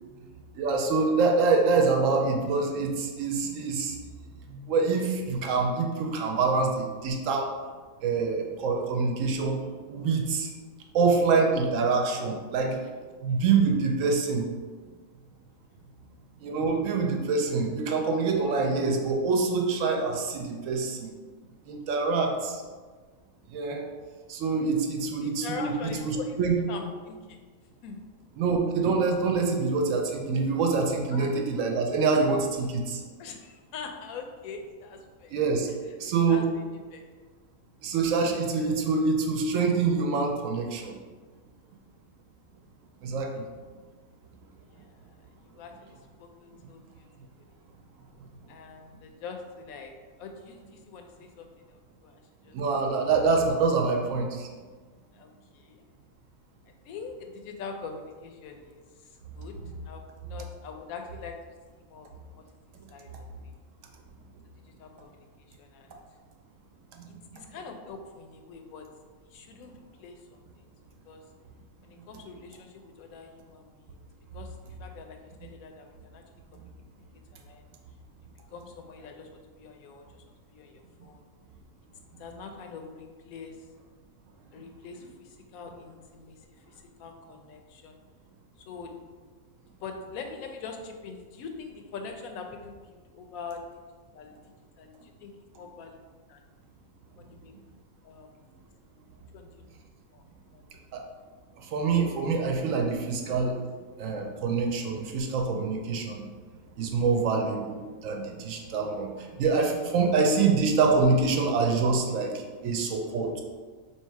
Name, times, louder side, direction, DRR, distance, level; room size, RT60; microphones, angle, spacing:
voice 1, 0.6-3.9 4.5-7.5 8.0-9.6 9.9-10.5 10.9-12.8 13.2-14.4 16.4-21.1 21.7-22.6 23.5-23.9 24.3-26.6 28.4-33.0 35.3-35.7 36.0-36.5 37.8-40.9 43.0-43.5 52.5-54.5 100.9-101.0 101.7-103.6 104.0-106.2 106.8-109.1 109.4-112.3 112.6-113.4, right 4 dB, 70° right, 2 dB, 0.9 m, -25 dB
voice 2, 25.2-26.4 26.7-27.4 27.8-28.0 31.1-31.3 33.2-35.3 36.3-36.5 36.9-37.1 41.2-41.3 44.7-45.1 45.4-47.1 48.5-49.9 50.2-52.6 55.1-55.8 56.8-58.8 59.3-59.6 59.9-61.4 61.7-62.1 62.4-62.5 62.9-63.3 64.8-66.0 67.1-68.9 69.3-70.6 71.1-71.2 71.8-74.0 74.3-76.2 76.5-76.6 76.9-77.0 77.3-77.6 78.5-80.2 80.5-81.2 82.2-83.6 84.5-86.4 86.7-88.0 88.7-88.9 89.7-93.6 94.1-94.3 94.8-96.0 96.3-96.4 97.2-97.5 98.0-98.3 99.3-99.5 100.1-100.2 100.5-100.6, left 5 dB, 85° left, 4 dB, 1.0 m, -43 dB
3.1 x 2.8 x 4.5 m, 1.4 s
omnidirectional pair, 1.5 m